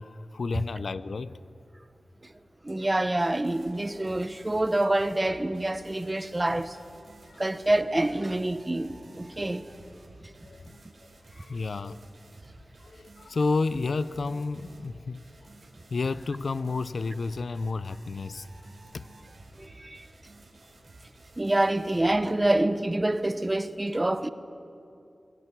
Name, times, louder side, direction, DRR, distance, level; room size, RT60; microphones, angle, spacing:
voice 1, 0.0-1.4 7.3-7.4 10.4-10.7 11.3-12.0 12.8-15.2 15.9-18.4 18.9-19.1, left 3 dB, 70° left, 0.5 m, -31 dB
voice 2, 2.6-6.7 7.4-9.6 19.6-19.7 21.4-24.3, right 1 dB, 20° right, 0.8 m, -26 dB
sound 1, 3.2-22.3, right 2 dB, 55° right, 4.1 m, -53 dB
23.0 x 17.0 x 8.2 m
wide cardioid pair, 100°, 0 cm